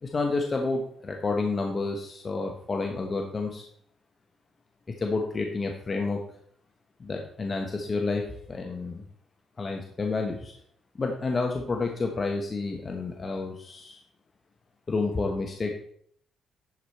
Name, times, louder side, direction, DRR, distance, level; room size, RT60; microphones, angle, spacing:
voice 1, 0.0-3.7 4.9-6.2 7.0-9.0 9.6-10.5 10.9-14.0 14.9-15.8, left 3 dB, 35° left, 2 dB, 1.2 m, -30 dB
11.5 x 5.0 x 4.4 m, 0.64 s
cardioid pair, 90°, 0 cm